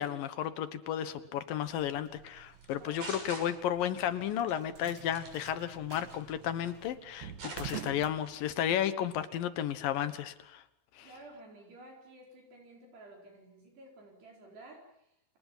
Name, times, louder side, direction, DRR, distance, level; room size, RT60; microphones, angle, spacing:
voice 1, 0.0-10.6 11.0-11.1, left 10 dB, 65° left, 12 dB, 2.6 m, -33 dB
sound 1, 1.6-8.9, right 11 dB, 85° right, 3.9 m, -49 dB
sound 2, 2.6-4.0 4.3-4.6 5.1-5.4 5.9-6.8 7.1-7.8 8.2-8.5, right 2 dB, 40° right, 8.1 m, -44 dB
voice 2, 2.8-3.1 11.0-15.4, right 2 dB, 65° right, 0 dB, 6.5 m, -53 dB
30.0 x 27.0 x 5.7 m, 0.76 s
omnidirectional pair, 5.2 m